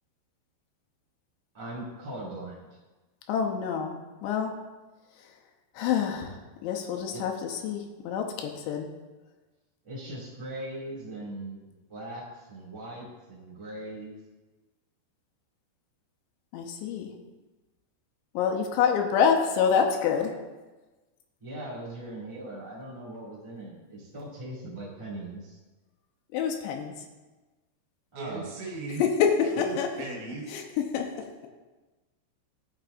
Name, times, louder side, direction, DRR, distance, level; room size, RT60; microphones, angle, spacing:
voice 1, 1.5-2.7 7.1-7.2 9.8-14.1 21.4-25.6 28.1-28.5, right 1 dB, 20° right, -7 dB, 0.7 m, -40 dB
voice 2, 3.3-3.9 4.2-4.5 5.8-6.4 6.6-8.9 16.5-17.1 18.3-20.3 26.3-26.9 29.0-29.9 30.5-31.1, left 7 dB, 85° left, 2 dB, 3.1 m, -26 dB
voice 3, 28.2-29.0 29.4-30.5, right 3 dB, 80° right, -3 dB, 3.9 m, -37 dB
14.5 x 6.0 x 2.6 m, 1.2 s
omnidirectional pair, 5.1 m